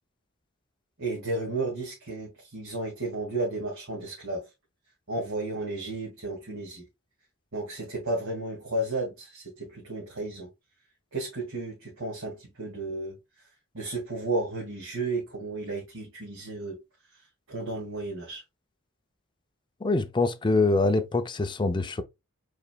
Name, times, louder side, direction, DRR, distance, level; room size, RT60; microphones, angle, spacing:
voice 1, 1.0-4.5 5.1-6.9 7.5-10.5 11.1-13.5 13.7-16.8 17.5-18.4, right 2 dB, 70° right, 2.1 m, -33 dB
voice 2, 19.8-22.0, left 3 dB, 20° left, 0.5 m, -24 dB
5.2 x 4.1 x 2.2 m
head